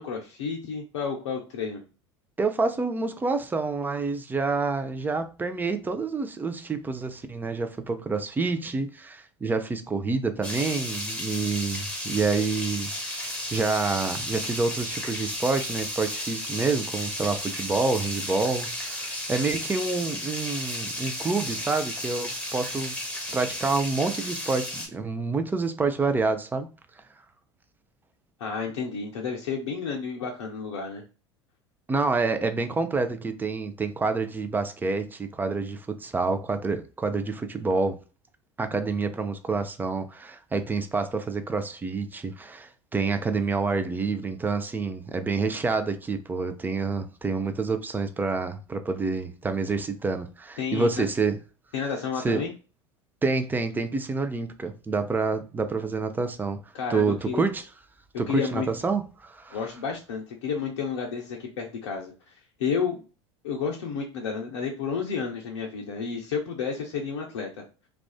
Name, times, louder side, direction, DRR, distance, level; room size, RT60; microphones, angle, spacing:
voice 1, 0.0-1.8 28.4-31.0 50.6-51.0 51.7-52.5 56.7-57.4 58.3-58.7 59.5-62.3 62.6-63.0 63.4-67.6, left 6 dB, 70° left, 0.5 m, -31 dB
voice 2, 2.4-23.0 23.3-26.7 31.9-38.0 38.6-51.4 52.2-52.4 53.2-56.6 56.9-57.7 58.2-59.6, right 4 dB, 15° right, 0.4 m, -28 dB
sound 1, 10.4-24.9, left 1 dB, 10° left, 1.2 m, -33 dB
2.4 x 2.2 x 2.3 m
figure-of-eight pair, 75°, 15 cm